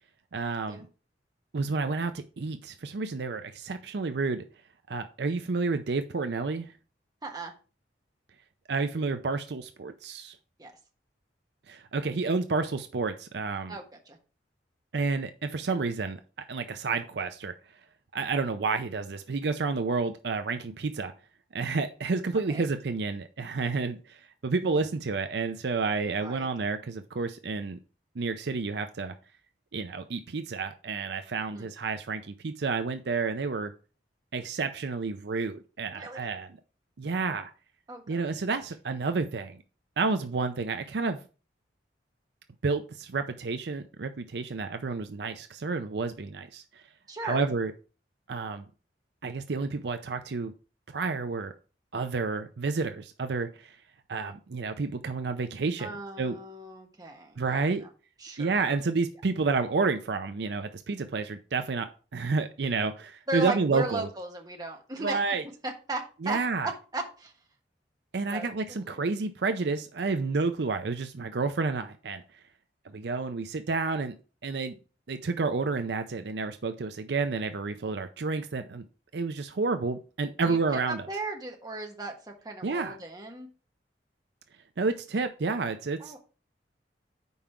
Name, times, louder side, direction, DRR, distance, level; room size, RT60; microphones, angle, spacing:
voice 1, 0.3-0.9 1.5-4.4 4.9-6.7 8.7-10.4 11.7-13.8 14.9-16.2 16.5-17.5 18.1-21.1 21.5-27.8 28.2-29.1 29.7-33.7 34.3-36.5 37.0-37.5 38.1-39.6 40.0-41.2 42.6-46.8 47.2-47.7 48.3-48.7 49.2-50.5 50.9-51.5 51.9-53.8 54.1-56.4 57.4-57.8 58.4-64.1 65.0-65.4 66.2-66.7 68.1-72.4 72.8-74.2 74.4-74.8 75.1-78.8 79.1-81.0 82.6-83.0 84.8-86.1, right 4 dB, 65° right, 8 dB, 0.5 m, -30 dB
voice 2, 7.2-7.5 10.6-10.8 13.7-14.2 22.5-22.7 26.2-26.5 31.5-31.7 35.9-36.3 37.9-38.2 47.1-47.5 55.8-57.9 58.2-58.6 63.3-65.2 65.6-67.3 68.3-69.1 77.8-77.9 80.4-83.5 86.0-86.2, right 2 dB, 20° right, 2 dB, 1.4 m, -37 dB
5.4 x 4.9 x 5.7 m, 0.36 s
head